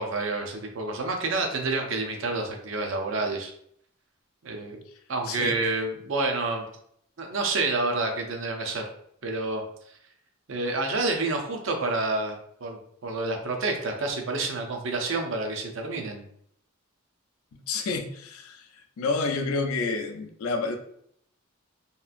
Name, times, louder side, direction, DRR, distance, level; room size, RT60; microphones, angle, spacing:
voice 1, 0.0-3.5 4.4-4.8 5.1-6.7 7.2-8.8 9.2-9.6 10.5-16.2, right 3 dB, 60° right, 3 dB, 0.5 m, -29 dB
voice 2, 5.2-5.6 17.7-18.7 19.0-20.8, left 3 dB, 80° left, 5 dB, 0.4 m, -29 dB
2.8 x 2.4 x 2.4 m, 0.68 s
head